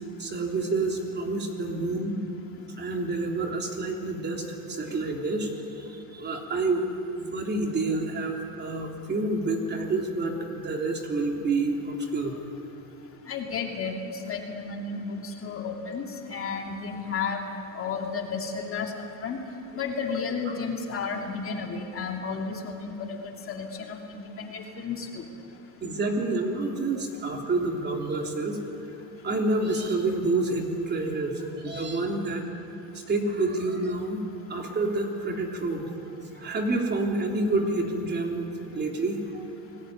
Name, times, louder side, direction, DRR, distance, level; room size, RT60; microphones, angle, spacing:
voice 1, 0.2-2.2 2.8-6.8 7.1-12.4 25.8-28.6 29.2-32.4 33.1-34.2 34.5-35.9 36.3-38.5 38.7-39.4, right 2 dB, 25° right, 1 dB, 3.4 m, -28 dB
voice 2, 13.3-14.0 14.2-16.0 16.3-17.5 17.7-18.9 19.2-19.4 19.7-23.2 23.5-25.2, left 5 dB, 30° left, 2 dB, 2.8 m, -32 dB
29.0 x 20.0 x 9.6 m, 2.8 s
cardioid pair, 145°, 42 cm